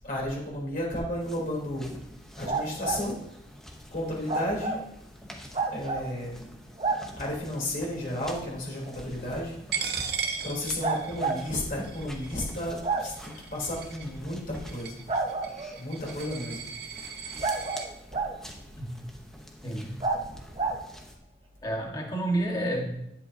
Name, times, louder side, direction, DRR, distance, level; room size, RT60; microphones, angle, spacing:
voice 1, 0.0-2.0 2.4-3.2 3.9-4.8 5.7-6.5 7.2-10.0 10.4-15.0 15.8-16.6 20.1-20.4 20.7-20.8, left 1 dB, 45° left, -4 dB, 3.6 m, -33 dB
sound 1, 1.2-21.2, equal, 5° left, 0.9 m, -47 dB
sound 2, 2.5-3.0 4.3-4.8 5.5-6.1 6.8-7.0 8.8-8.9 10.8-11.4 12.8-13.1 15.1-15.8 17.4-18.4 20.0-20.2 20.6-20.8, right 3 dB, 30° right, 0.8 m, -29 dB
Coin (dropping), 9.7-17.9, right 6 dB, 55° right, 1.0 m, -37 dB
voice 2, 19.6-20.0 21.6-23.0, right 1 dB, 20° left, 0 dB, 1.6 m, -29 dB
11.0 x 9.6 x 2.8 m, 0.81 s
head